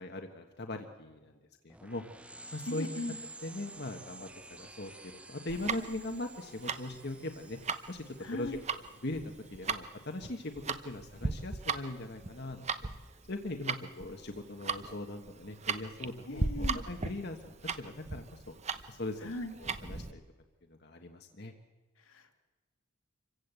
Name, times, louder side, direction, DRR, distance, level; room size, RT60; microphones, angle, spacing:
voice 1, 0.0-1.4 1.6-2.9 3.4-7.6 7.9-8.6 9.0-10.5 10.8-12.7 13.3-18.5 18.9-20.2 20.7-21.5, left 2 dB, 50° left, 4 dB, 1.4 m, -40 dB
sound 1, 1.7-11.8, right 2 dB, 5° right, 0.7 m, -52 dB
voice 2, 2.7-3.2 8.2-8.6 16.3-16.8 19.2-19.5 22.1-22.4, left 1 dB, 80° left, 4 dB, 2.3 m, -38 dB
Tick-tock, 5.5-20.1, right 4 dB, 30° right, 0.9 m, -37 dB
26.5 x 16.0 x 8.2 m, 1.3 s
head